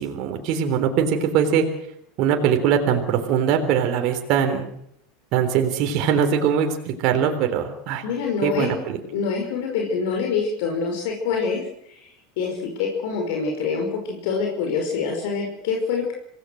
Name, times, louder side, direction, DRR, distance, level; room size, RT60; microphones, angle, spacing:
voice 1, 0.0-1.7 2.2-4.7 5.3-8.0 8.4-9.0, right 8 dB, 55° right, 4 dB, 3.6 m, -21 dB
voice 2, 8.0-8.8 9.1-11.6 11.9-16.1, left 5 dB, 65° left, 1 dB, 5.3 m, -26 dB
26.0 x 18.0 x 6.4 m, 0.71 s
hypercardioid pair, 85°, 0 cm